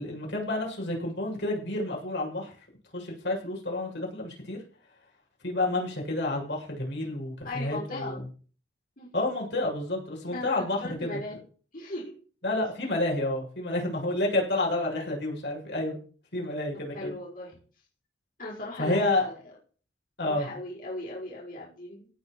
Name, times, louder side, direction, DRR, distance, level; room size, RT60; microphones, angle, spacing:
voice 1, 0.0-2.5 2.9-4.6 5.4-8.2 9.1-11.2 12.4-16.0 16.3-17.1 18.8-19.3 20.2-20.5, left 2 dB, 70° left, -2 dB, 7.3 m, -29 dB
voice 2, 7.4-8.2 9.0-9.1 10.3-11.4 11.7-12.1 16.9-17.6 18.4-19.3 20.2-22.1, left 2 dB, 50° left, -4 dB, 5.8 m, -38 dB
17.5 x 6.2 x 6.4 m, 0.41 s
head